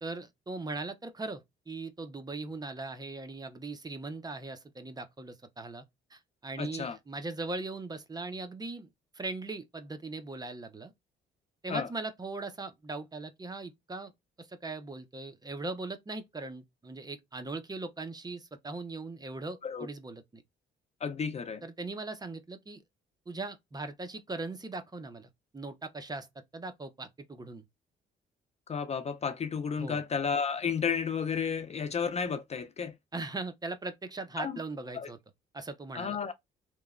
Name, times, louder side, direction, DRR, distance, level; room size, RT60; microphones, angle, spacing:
voice 1, 0.0-5.8 6.1-8.9 9.1-10.9 11.6-14.1 14.4-20.4 21.6-22.8 23.3-26.3 26.5-27.6 29.8-30.0 33.1-35.2 35.5-36.2, right 3 dB, 20° right, 0.5 m, -39 dB
voice 2, 6.6-7.0 11.7-11.9 19.6-19.9 21.0-21.6 28.7-32.9 34.4-34.6 34.9-35.1 35.9-36.3, left 6 dB, 35° left, 0.4 m, -32 dB
2.9 x 2.1 x 2.3 m
cardioid pair, 90°, 20 cm